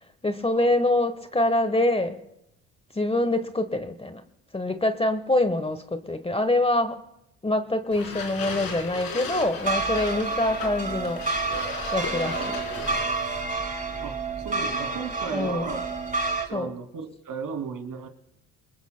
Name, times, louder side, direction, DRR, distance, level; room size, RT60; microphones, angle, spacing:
voice 1, 0.2-2.2 2.9-4.2 4.5-7.0 7.4-11.3 11.9-12.4 15.3-15.7 16.5-16.7, left 1 dB, 15° left, 10 dB, 1.1 m, -25 dB
sound 1, 7.9-13.4, left 4 dB, 60° left, 4.0 m, -36 dB
sound 2, 9.6-16.5, right 3 dB, 20° right, 2.6 m, -29 dB
voice 2, 14.0-15.9 16.2-18.1, right 6 dB, 55° right, 6 dB, 2.6 m, -35 dB
27.0 x 21.0 x 2.2 m, 0.83 s
supercardioid pair, 70°, 39 cm